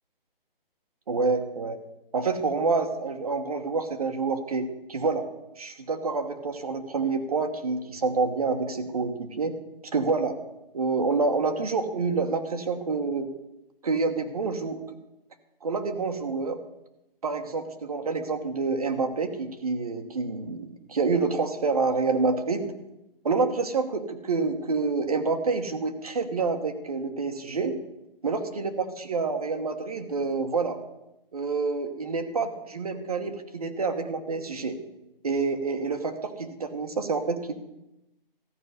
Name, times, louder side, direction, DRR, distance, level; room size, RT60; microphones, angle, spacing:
voice 1, 1.1-1.8 2.1-5.3 5.6-9.5 9.9-10.4 10.7-13.3 13.8-14.8 15.6-16.6 17.2-22.7 23.2-27.7 28.2-30.8 31.3-34.7 35.2-37.5, right 4 dB, 40° right, 5 dB, 1.2 m, -27 dB
14.0 x 5.4 x 9.4 m, 0.92 s
hypercardioid pair, 175°, 29 cm